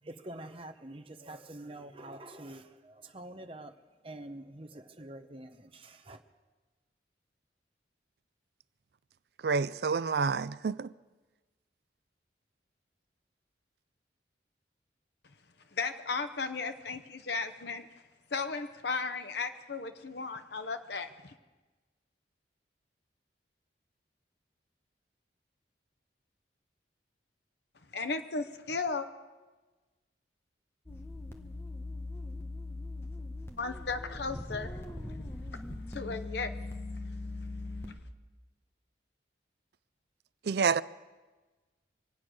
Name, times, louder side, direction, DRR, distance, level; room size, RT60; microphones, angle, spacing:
voice 1, 0.0-3.8 4.0-6.2, right 1 dB, 30° right, 0.9 m, -46 dB
voice 2, 9.4-10.9 40.4-40.8, right 5 dB, 60° right, 0.4 m, -28 dB
voice 3, 15.7-17.9 18.3-21.3 27.9-29.1 33.6-34.8 35.1-35.2 35.9-36.5, left 4 dB, 65° left, 0.9 m, -35 dB
sound 1, 30.9-38.0, left 2 dB, 15° left, 1.1 m, -40 dB
25.0 x 8.6 x 6.3 m
head